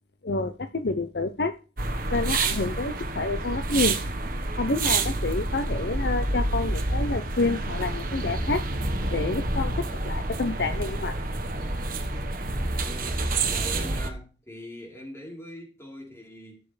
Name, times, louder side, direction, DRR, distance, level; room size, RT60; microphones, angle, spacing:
voice 1, 0.2-1.5 2.1-4.0 4.6-8.6 9.1-11.1, left 3 dB, 60° left, 0.8 m, -28 dB
sound 1, 1.8-14.1, right 2 dB, 50° right, 1.4 m, -28 dB
voice 2, 12.7-16.6, equal, 15° left, 3.9 m, -42 dB
16.5 x 6.9 x 3.3 m
head